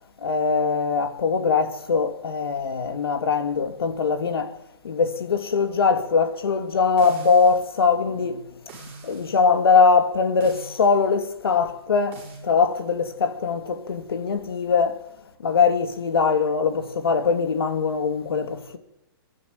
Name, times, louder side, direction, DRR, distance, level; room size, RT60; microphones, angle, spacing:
voice 1, 0.2-4.6 4.8-8.4 9.0-15.0 15.4-18.8, left 5 dB, 75° left, 2.6 m, -22 dB
sound 1, 7.0-7.8 8.7-9.4 10.4-11.0 12.1-12.4, right 3 dB, 15° right, 6.0 m, -43 dB
29.0 x 11.0 x 9.3 m
hypercardioid pair, 180°, 13 cm